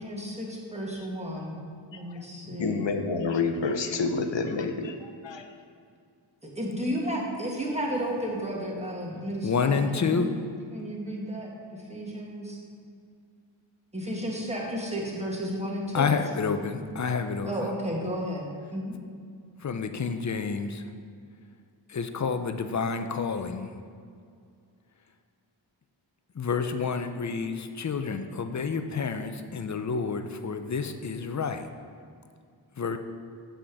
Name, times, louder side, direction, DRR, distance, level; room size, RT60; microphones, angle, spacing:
voice 1, 0.0-1.5 1.9-2.9 6.6-10.3 10.7-11.5 11.9-12.6 13.9-16.1 17.4-18.5 18.7-19.0, equal, 15° right, -3 dB, 1.6 m, -32 dB
voice 2, 1.9-5.5, left 4 dB, 65° left, 6 dB, 0.8 m, -29 dB
voice 3, 9.4-10.3 15.9-17.7 19.6-20.8 21.9-23.7 26.4-31.7 32.8-33.0, left 5 dB, 40° left, 8 dB, 0.5 m, -29 dB
7.5 x 5.1 x 5.9 m, 2.2 s
wide cardioid pair, 95°, 47 cm